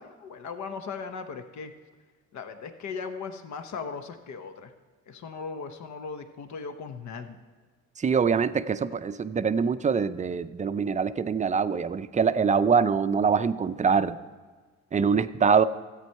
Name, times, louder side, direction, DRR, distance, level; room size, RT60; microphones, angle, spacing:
voice 1, 0.0-1.7 2.3-4.7 5.1-7.4, left 5 dB, 70° left, 8 dB, 0.9 m, -38 dB
voice 2, 8.0-14.2 14.9-15.6, right 6 dB, 25° right, 13 dB, 0.4 m, -24 dB
13.5 x 8.5 x 4.5 m, 1.4 s
cardioid pair, 90°, 30 cm